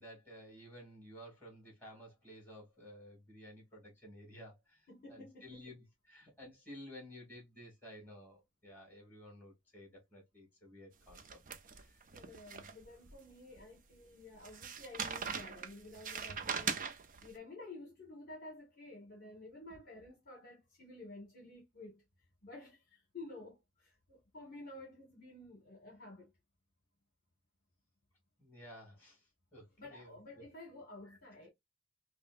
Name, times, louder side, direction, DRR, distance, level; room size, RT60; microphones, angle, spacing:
voice 1, 0.0-11.4 11.8-12.0 28.4-29.3 29.5-30.2, equal, 10° left, 2.7 m, -54 dB
voice 2, 4.9-5.7 12.1-16.8 17.2-22.0 22.4-26.3 29.8-31.5, left 2 dB, 45° left, 1.5 m, -52 dB
sound 1, 11.1-13.1 13.6-13.7 14.4-17.3, right 6 dB, 40° right, 0.6 m, -41 dB
5.1 x 2.1 x 2.5 m
head